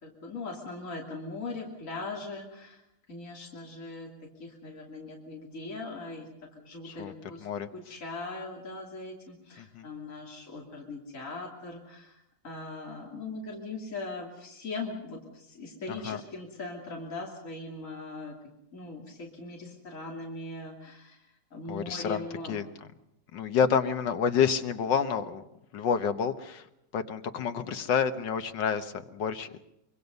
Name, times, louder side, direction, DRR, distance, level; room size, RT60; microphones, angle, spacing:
voice 1, 0.0-2.8 3.1-4.1 4.4-6.3 6.5-18.4 18.7-21.2 21.5-22.6, left 3 dB, 45° left, -1 dB, 3.3 m, -40 dB
voice 2, 6.8-7.1 7.4-8.0 9.6-9.9 15.9-16.2 21.7-22.7 23.3-25.4 25.7-26.7 26.9-29.6, left 7 dB, 80° left, 9 dB, 1.8 m, -29 dB
25.0 x 23.5 x 5.4 m, 0.85 s
omnidirectional pair, 1.9 m